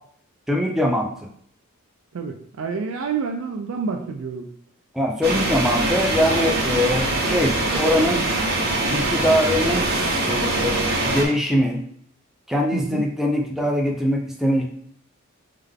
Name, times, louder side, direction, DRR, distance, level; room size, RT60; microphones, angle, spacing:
voice 1, 0.5-1.3 4.9-8.2 8.9-9.9 10.2-11.8 12.5-14.7, equal, ahead, 0 dB, 0.4 m, -22 dB
voice 2, 2.1-4.5 12.7-13.1, right 5 dB, 60° right, 3 dB, 0.4 m, -28 dB
sound 1, 5.2-11.2, right 2 dB, 45° right, 0.8 m, -23 dB
3.7 x 3.2 x 3.5 m, 0.64 s
head